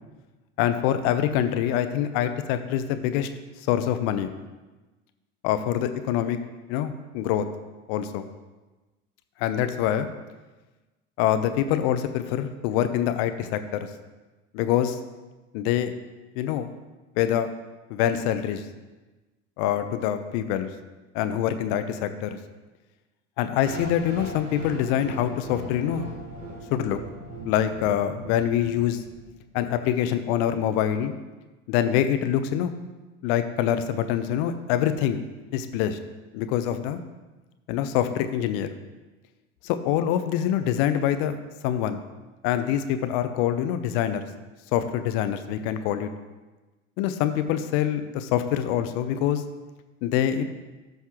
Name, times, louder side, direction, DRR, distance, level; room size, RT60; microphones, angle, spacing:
voice 1, 0.6-3.3 3.7-4.3 5.4-6.4 6.7-7.5 7.9-8.3 9.4-10.1 11.2-13.9 14.5-15.0 15.5-15.9 16.4-16.7 17.2-17.5 17.9-18.6 19.6-20.7 21.1-22.4 23.4-26.1 26.7-27.0 27.4-29.0 29.5-31.1 31.7-32.7 33.2-35.2 35.5-36.0 36.3-37.0 37.7-38.7 39.6-41.3 41.6-42.0 42.4-44.3 44.7-46.1 47.0-49.4 50.0-50.4, left 10 dB, 55° left, 10 dB, 0.8 m, -25 dB
sound 1, 23.6-29.7, right 2 dB, 85° right, 1.5 m, -40 dB
14.0 x 5.7 x 3.0 m, 1.2 s
figure-of-eight pair, 70°, 36 cm